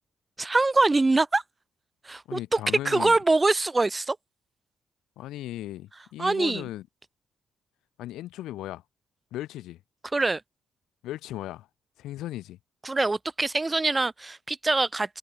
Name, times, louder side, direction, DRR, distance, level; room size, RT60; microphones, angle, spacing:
voice 1, 0.4-1.4 2.1-4.2 6.2-6.6 10.1-10.4 12.8-15.2, right 3 dB, 20° right, 2.1 m, -24 dB
voice 2, 2.3-3.2 5.2-6.9 8.0-8.8 9.3-9.8 11.0-11.7 12.0-12.6, left 14 dB, 85° left, 4.7 m, -36 dB
cardioid pair, 90°, 0 cm